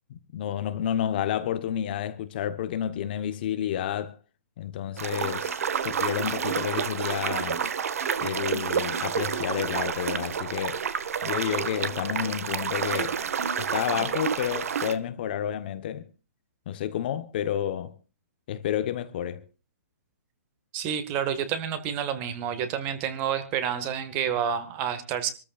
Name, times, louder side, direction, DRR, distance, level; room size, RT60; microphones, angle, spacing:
voice 1, 0.3-4.1 4.6-7.6 8.2-10.8 11.2-13.2 13.6-16.1 16.7-18.0 18.5-19.4, left 10 dB, 35° left, 1.0 m, -30 dB
sound 1, 5.0-14.9, right 7 dB, 60° right, 1.5 m, -29 dB
voice 2, 20.7-25.3, right 8 dB, 20° right, 1.6 m, -29 dB
26.0 x 14.0 x 2.4 m
hypercardioid pair, 165°, 9 cm